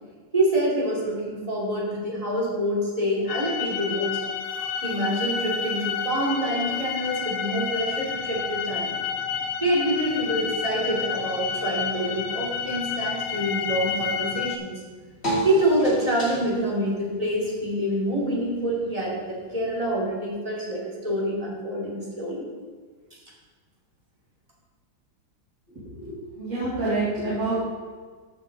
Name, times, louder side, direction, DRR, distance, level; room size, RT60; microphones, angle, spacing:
voice 1, 0.3-4.2 4.8-9.0 9.6-14.7 15.4-22.5, right 1 dB, 20° right, -5 dB, 2.5 m, -26 dB
sound 1, 3.3-14.6, left 7 dB, 85° left, 1.4 m, -30 dB
sound 2, 6.4-20.0, right 1 dB, 30° left, 2.9 m, -39 dB
voice 2, 25.7-27.5, right 2 dB, 65° right, -11 dB, 3.8 m, -28 dB
14.5 x 5.9 x 3.9 m, 1.5 s
omnidirectional pair, 2.1 m